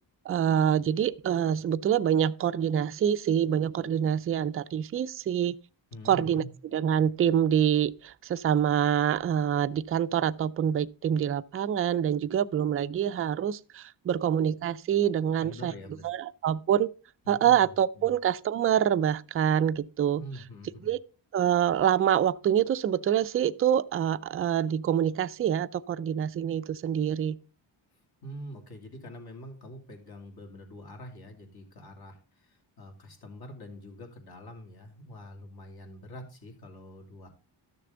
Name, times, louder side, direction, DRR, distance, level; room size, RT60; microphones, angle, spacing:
voice 1, 0.3-5.5 6.1-6.4 6.7-15.7 16.0-16.9 17.3-20.2 20.8-21.0 21.3-27.4, right 9 dB, 30° right, 0.4 m, -26 dB
voice 2, 5.9-6.5 15.4-16.0 17.2-18.1 20.2-20.9 27.9-37.3, equal, 50° left, 2.7 m, -45 dB
13.0 x 6.7 x 3.8 m
wide cardioid pair, 125°, 46 cm